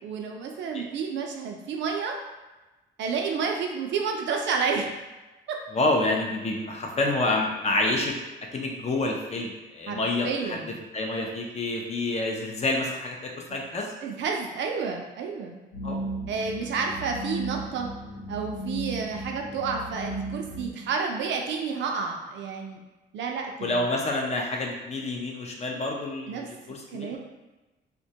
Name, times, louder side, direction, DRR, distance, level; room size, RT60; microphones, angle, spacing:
voice 1, 0.0-2.2 3.0-4.9 5.5-5.6 9.9-10.8 13.5-13.6 14.0-15.6 16.3-17.9 18.3-22.8 23.1-23.8 26.3-26.5 26.9-27.2, right 5 dB, 65° right, 1 dB, 0.4 m, -30 dB
voice 2, 5.7-8.2 8.5-10.6 10.9-13.9 15.8-16.0 23.6-27.2, left 2 dB, 35° left, 1 dB, 0.4 m, -28 dB
sound 1, 15.7-20.7, right 1 dB, 85° left, 0.8 m, -35 dB
2.1 x 2.1 x 2.7 m, 1.1 s
cardioid pair, 90°, 20 cm